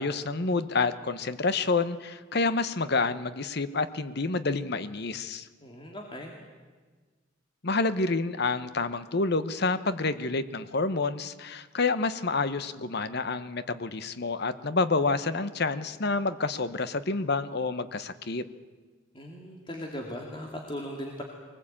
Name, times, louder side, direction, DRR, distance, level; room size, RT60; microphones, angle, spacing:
voice 1, 0.0-5.5 7.6-18.4, left 3 dB, 55° left, 13 dB, 1.0 m, -28 dB
voice 2, 5.6-6.3 19.1-21.2, equal, 25° left, 1 dB, 2.4 m, -38 dB
23.0 x 19.5 x 8.8 m, 1.4 s
head